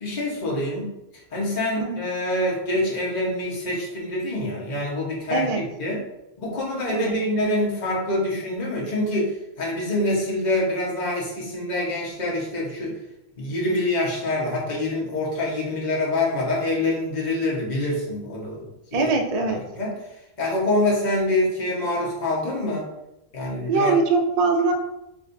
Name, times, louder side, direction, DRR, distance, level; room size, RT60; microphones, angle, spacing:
voice 1, 0.0-6.0 6.4-13.0 13.4-19.1 19.4-22.9 23.3-23.9, left 1 dB, 40° left, -4 dB, 1.1 m, -26 dB
voice 2, 5.3-5.6 6.9-7.2 18.9-19.6 23.7-24.7, right 3 dB, 50° right, 3 dB, 0.4 m, -22 dB
6.1 x 2.6 x 2.6 m, 0.92 s
omnidirectional pair, 1.2 m